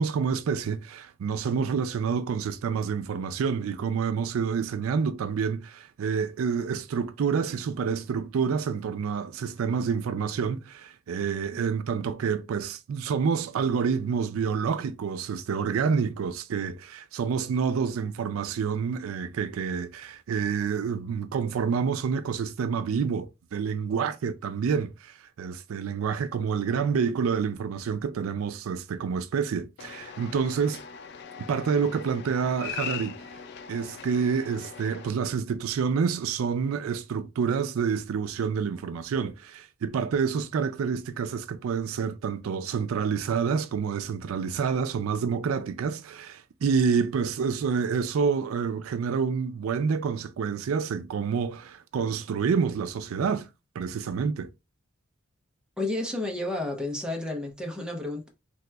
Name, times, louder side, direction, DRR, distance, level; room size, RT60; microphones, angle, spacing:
voice 1, 0.0-30.8 31.5-33.2 33.7-53.5 53.8-54.5, right 6 dB, 90° right, 0.4 m, -28 dB
sound 1, 29.8-35.1, left 7 dB, 55° left, 0.3 m, -40 dB
voice 2, 55.8-58.3, left 2 dB, 5° right, 0.7 m, -31 dB
3.3 x 2.9 x 2.2 m
head